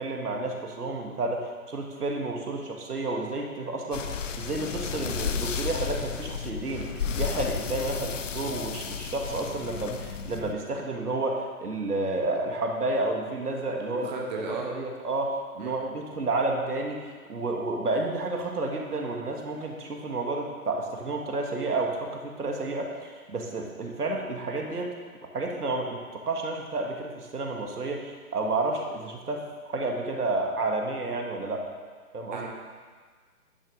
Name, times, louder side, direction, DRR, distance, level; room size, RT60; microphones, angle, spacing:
voice 1, 0.0-24.9 25.3-31.6 32.1-32.4, right 2 dB, 85° right, 1 dB, 2.0 m, -31 dB
sound 1, 3.9-10.5, left 6 dB, 55° left, 0.7 m, -33 dB
voice 2, 13.8-14.7 15.6-15.7 32.3-32.5, right 4 dB, 30° right, -1 dB, 1.0 m, -35 dB
10.5 x 6.1 x 5.2 m, 1.5 s
hypercardioid pair, 155°, 45 cm